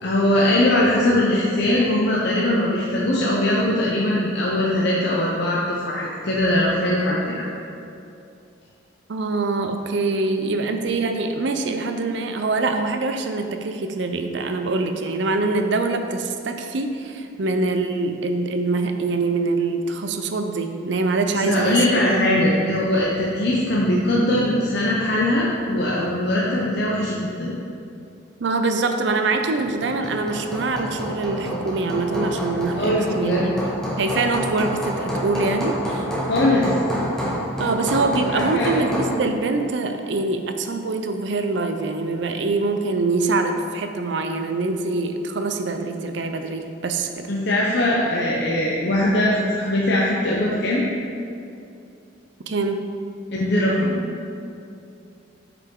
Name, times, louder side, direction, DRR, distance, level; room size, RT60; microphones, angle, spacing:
voice 1, 0.0-7.5 21.3-27.5 32.8-33.5 36.3-36.7 38.3-38.7 47.3-50.8 53.3-54.0, left 1 dB, 55° left, -5 dB, 0.7 m, -21 dB
voice 2, 9.1-21.8 28.4-33.5 34.0-36.1 37.6-47.2 52.5-52.8, right 3 dB, 65° right, 6 dB, 0.5 m, -24 dB
Hammer, 29.6-39.2, equal, 5° left, 0.9 m, -28 dB
7.6 x 5.1 x 3.8 m, 2.6 s
head